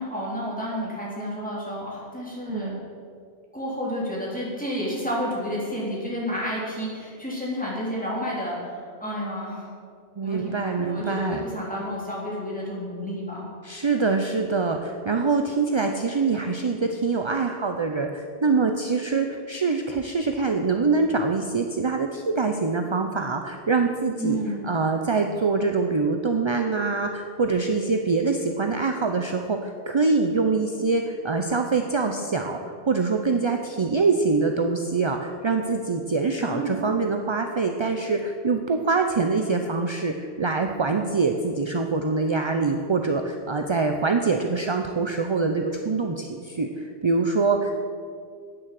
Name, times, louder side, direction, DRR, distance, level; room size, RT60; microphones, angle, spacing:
voice 1, 0.0-2.7 3.5-8.7 9.0-9.7 10.2-13.4 24.2-24.6 36.4-36.8, equal, 5° left, -7 dB, 3.9 m, -30 dB
voice 2, 2.5-2.8 10.2-11.5 13.6-24.4 24.6-32.6 32.9-47.8, right 4 dB, 35° right, 5 dB, 0.5 m, -24 dB
9.9 x 9.3 x 7.7 m, 2.2 s
omnidirectional pair, 1.2 m